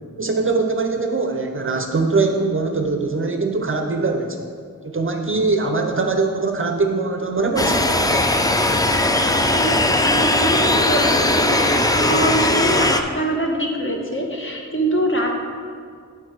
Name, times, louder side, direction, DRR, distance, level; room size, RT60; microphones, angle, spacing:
voice 1, 0.2-4.4 4.8-7.9, right 3 dB, 40° right, 4 dB, 0.6 m, -22 dB
sound 1, 7.6-13.0, left 1 dB, 10° left, 0.4 m, -18 dB
voice 2, 10.0-15.3, right 1 dB, 35° left, 1 dB, 1.1 m, -23 dB
9.6 x 4.6 x 4.6 m, 2.1 s
wide cardioid pair, 100°, 34 cm